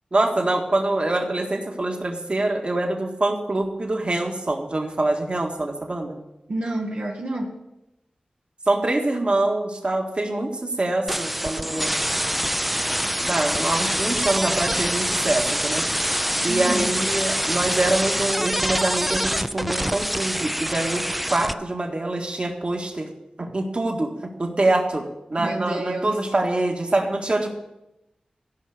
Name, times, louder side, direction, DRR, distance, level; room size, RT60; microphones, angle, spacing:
voice 1, 0.1-6.2 8.7-11.9 13.2-15.9 16.4-23.1 23.4-24.1 24.4-27.5, right 2 dB, 45° right, 2 dB, 1.8 m, -25 dB
voice 2, 6.5-7.6 16.5-17.0 25.4-26.1, right 1 dB, 70° right, -1 dB, 1.3 m, -29 dB
sound 1, 11.1-21.5, equal, 5° right, 0.5 m, -25 dB
14.5 x 5.7 x 6.6 m, 0.92 s
wide cardioid pair, 65°, 3 cm